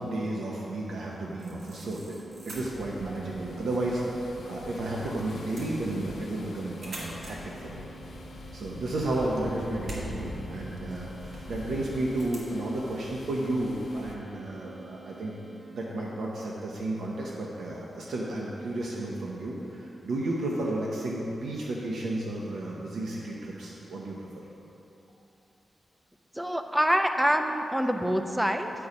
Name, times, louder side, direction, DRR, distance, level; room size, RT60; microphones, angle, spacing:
voice 1, 0.0-2.1 2.5-4.0 4.5-7.9 8.5-11.1 11.5-15.3 15.7-24.2, right 1 dB, 85° right, -4 dB, 0.8 m, -32 dB
sound 1, 1.4-15.6, right 5 dB, 50° right, 1.7 m, -50 dB
sound 2, 1.4-12.5, right 1 dB, 70° right, 1.7 m, -47 dB
sound 3, 2.5-14.1, left 2 dB, 65° left, 0.7 m, -45 dB
voice 2, 26.4-28.7, equal, 5° right, 6 dB, 0.3 m, -25 dB
8.4 x 4.7 x 5.2 m, 3.0 s
wide cardioid pair, 180°, 0 cm